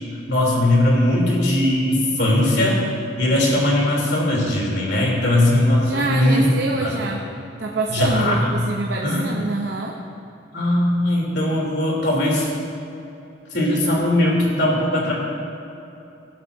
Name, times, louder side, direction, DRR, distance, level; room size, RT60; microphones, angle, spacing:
voice 1, 0.3-2.8 3.2-6.5 6.8-7.0 7.9-8.6 9.0-9.3 10.5-12.5 13.5-15.1, left 1 dB, 65° left, -3 dB, 3.3 m, -19 dB
voice 2, 5.9-7.2 7.6-10.0, right 3 dB, 65° right, 0 dB, 0.8 m, -26 dB
18.5 x 12.0 x 2.7 m, 2.8 s
head